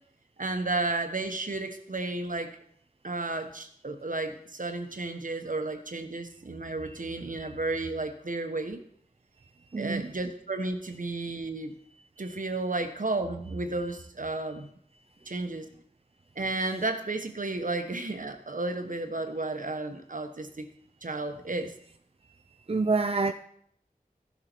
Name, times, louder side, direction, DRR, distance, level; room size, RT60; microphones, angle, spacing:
voice 1, 0.4-2.5 3.0-8.8 9.8-11.7 12.2-14.7 15.3-15.7 16.3-20.7 21.0-21.7, right 2 dB, 65° right, 1.2 m, -32 dB
voice 2, 9.4-10.1 15.2-15.3 22.2-23.3, right 3 dB, 40° right, 0.5 m, -30 dB
14.5 x 6.9 x 4.5 m
wide cardioid pair, 40°, 14 cm